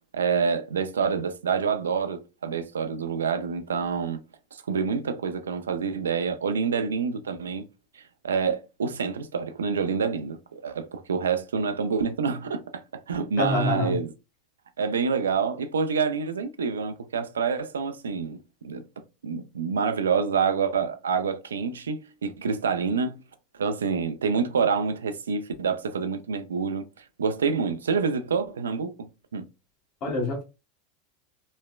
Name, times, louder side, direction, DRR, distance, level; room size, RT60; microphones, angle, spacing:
voice 1, 0.1-4.2 4.7-7.7 7.9-12.8 13.1-14.1 14.8-18.8 19.2-23.2 23.6-26.8 27.2-29.5, right 5 dB, 90° right, 0.3 m, -27 dB
voice 2, 13.4-14.0 30.0-30.4, left 2 dB, 45° left, 1.3 m, -26 dB
3.1 x 2.1 x 2.2 m
hypercardioid pair, 95°, 0 cm